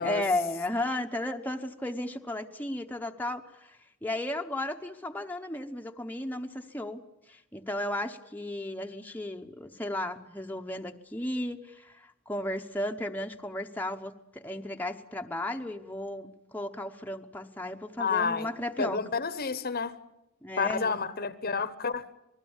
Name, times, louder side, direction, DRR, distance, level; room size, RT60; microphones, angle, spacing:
voice 1, 0.0-7.0 7.3-19.0 20.4-20.9, left 1 dB, 10° left, 0.9 m, -34 dB
voice 2, 18.0-18.5 18.8-20.0 20.6-22.1, left 5 dB, 45° left, 1.0 m, -30 dB
27.5 x 20.0 x 7.2 m
head